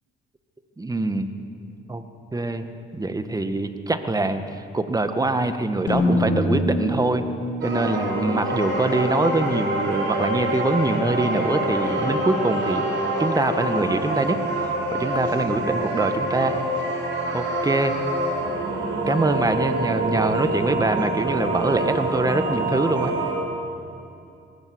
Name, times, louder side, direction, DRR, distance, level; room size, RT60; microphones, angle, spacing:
voice 1, 0.8-1.3 1.9-2.0 2.3-2.7 2.9-4.4 4.7-7.3 7.6-12.9 13.2-14.4 14.9-16.6 17.3-18.0 19.1-23.1, right 2 dB, 20° right, 8 dB, 1.7 m, -24 dB
sound 1, 5.9-10.0, left 1 dB, 65° left, 4.4 m, -26 dB
sound 2, 7.6-23.3, right 1 dB, 70° right, 6.9 m, -26 dB
20.5 x 17.0 x 9.6 m, 2.6 s
cardioid pair, 90°, 20 cm